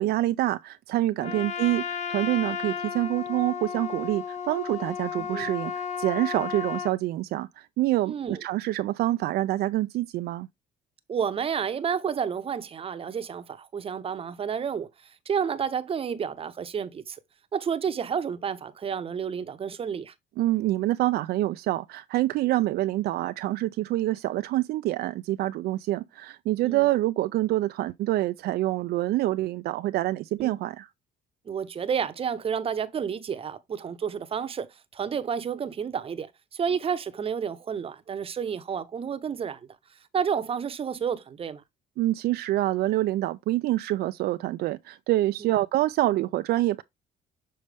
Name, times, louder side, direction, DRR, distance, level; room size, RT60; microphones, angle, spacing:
voice 1, 0.0-10.5 20.4-30.9 42.0-46.8, right 16 dB, 70° right, 0.4 m, -26 dB
Trumpet, 1.2-7.0, left 7 dB, 45° left, 1.0 m, -33 dB
voice 2, 5.2-5.5 8.1-8.4 11.1-17.2 17.5-20.1 26.6-26.9 30.4-30.6 31.5-39.7 40.1-41.6 45.4-45.5, right 7 dB, 35° right, 0.8 m, -30 dB
6.6 x 4.2 x 3.4 m
cardioid pair, 110°, 17 cm